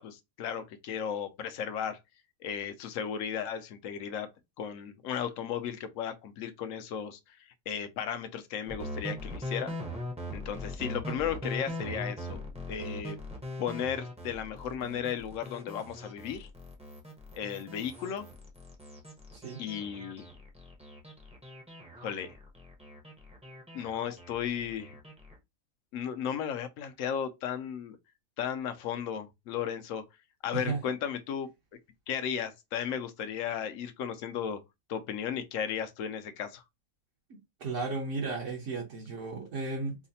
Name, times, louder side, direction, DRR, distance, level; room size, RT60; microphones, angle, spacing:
voice 1, 0.0-2.0 2.4-4.3 4.6-7.4 7.7-9.8 10.3-12.4 12.7-13.2 13.6-16.5 17.3-18.3 19.6-20.3 22.0-22.3 23.7-24.9 25.9-28.0 28.4-30.0 30.4-31.5 32.1-34.6 34.9-36.6, left 8 dB, 70° left, 0.9 m, -35 dB
sound 1, 8.7-25.3, left 1 dB, 5° right, 0.6 m, -41 dB
voice 2, 37.6-40.0, right 3 dB, 60° right, 1.2 m, -34 dB
4.7 x 2.1 x 2.7 m
omnidirectional pair, 1.5 m